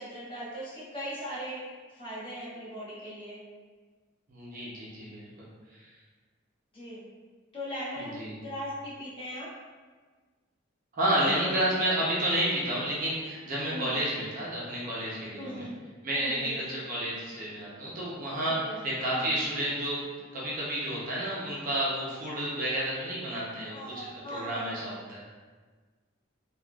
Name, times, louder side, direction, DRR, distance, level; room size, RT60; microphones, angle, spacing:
voice 1, 0.0-1.6 1.9-3.4 6.7-7.0 7.5-9.5 11.2-11.7 13.7-14.0 15.4-15.8 16.1-16.6 18.5-19.4 23.7-24.8, equal, 25° left, -10 dB, 1.1 m, -39 dB
voice 2, 4.3-5.2 5.8-5.9 8.0-8.4 10.9-15.7 16.0-18.7 19.0-20.0 20.3-25.3, right 1 dB, 40° right, -6 dB, 0.7 m, -31 dB
3.6 x 2.4 x 2.3 m, 1.4 s
head